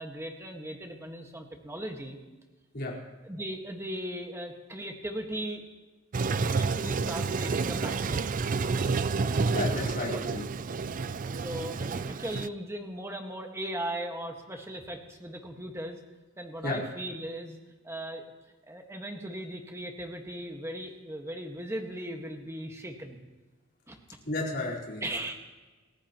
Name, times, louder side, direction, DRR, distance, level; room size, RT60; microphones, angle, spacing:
voice 1, 0.0-2.2 3.2-5.6 6.3-8.2 9.0-9.6 10.1-10.2 11.1-16.0 16.4-17.6 17.8-18.2 18.7-23.2 23.9-24.0 25.0-25.3, right 1 dB, 15° right, 3 dB, 1.6 m, -38 dB
Toilet flush, 6.1-12.5, right 4 dB, 40° right, 0.4 m, -29 dB
voice 2, 9.5-10.4 16.6-16.8 24.2-25.0, left 2 dB, 50° left, -3 dB, 4.4 m, -32 dB
29.0 x 15.5 x 3.0 m, 1.2 s
head